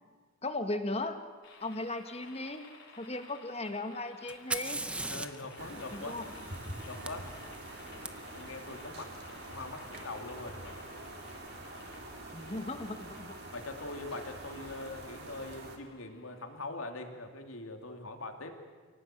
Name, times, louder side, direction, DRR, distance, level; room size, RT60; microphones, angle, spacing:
voice 1, 0.4-1.2 1.6-2.7 3.0-4.8 5.9-6.3 12.3-13.3, left 2 dB, 30° left, 8 dB, 1.5 m, -37 dB
sound 1, 1.4-16.6, left 3 dB, 55° left, 4.7 m, -54 dB
Fire, 4.3-8.1 10.0-10.1 10.9-11.3, right 2 dB, 5° right, 0.8 m, -40 dB
voice 2, 5.1-6.2 6.9-7.3 8.3-9.1 9.4-10.6 13.5-18.5, left 2 dB, 75° left, 5 dB, 2.8 m, -42 dB
sound 2, 5.6-15.8, right 2 dB, 50° right, 3.1 m, -46 dB
28.0 x 18.0 x 9.1 m, 1.5 s
head